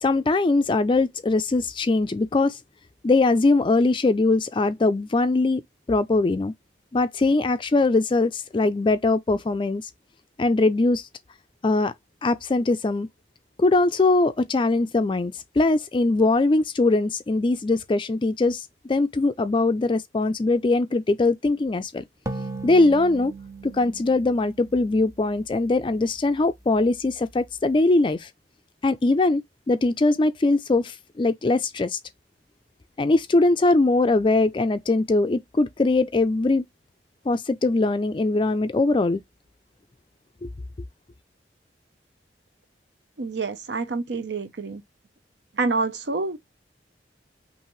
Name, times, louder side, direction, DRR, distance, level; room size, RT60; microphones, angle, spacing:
voice 1, 0.0-2.6 3.0-5.6 5.9-6.5 6.9-9.9 10.4-11.1 11.6-11.9 12.2-13.1 13.6-22.0 22.6-23.3 23.6-28.3 28.8-29.4 29.7-32.0 33.0-36.6 37.3-39.2 40.4-40.5, left 2 dB, 30° left, 0.4 m, -21 dB
sound 1, 22.3-25.7, right 2 dB, 15° right, 0.6 m, -37 dB
voice 2, 43.2-44.8 45.6-46.4, right 3 dB, 70° right, 0.7 m, -27 dB
5.6 x 2.6 x 3.1 m
head